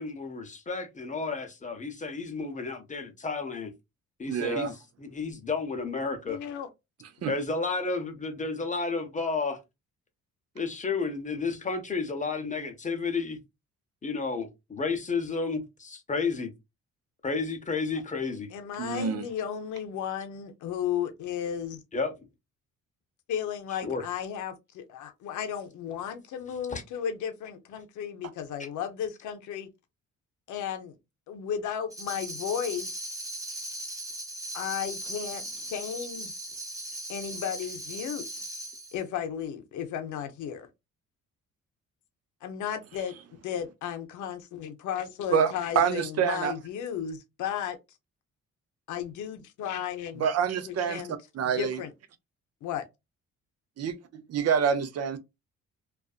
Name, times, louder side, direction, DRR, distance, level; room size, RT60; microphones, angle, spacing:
voice 1, 0.0-3.7 4.2-4.7 5.0-6.4 7.3-9.6 10.6-13.4 14.0-16.5 17.2-18.5 21.9-22.1 23.8-24.0 26.7-26.8, left 4 dB, 25° left, 0.7 m, -31 dB
voice 2, 4.3-4.7 7.2-7.3 18.8-19.2 45.3-46.5 50.2-51.0 51.3-51.8 53.8-55.2, right 7 dB, 55° right, 0.6 m, -27 dB
voice 3, 6.3-6.7 7.2-7.3 18.5-21.8 23.3-29.7 30.5-31.0 31.3-33.1 34.5-36.4 37.1-38.4 38.9-40.7 42.4-43.1 43.4-47.8 48.9-50.3 50.7-51.2 51.5-51.9 52.6-52.8, left 8 dB, 80° left, 0.6 m, -34 dB
Tambourine, 31.9-39.0, right 1 dB, 10° right, 0.7 m, -38 dB
2.5 x 2.4 x 2.4 m
cardioid pair, 90°, 30 cm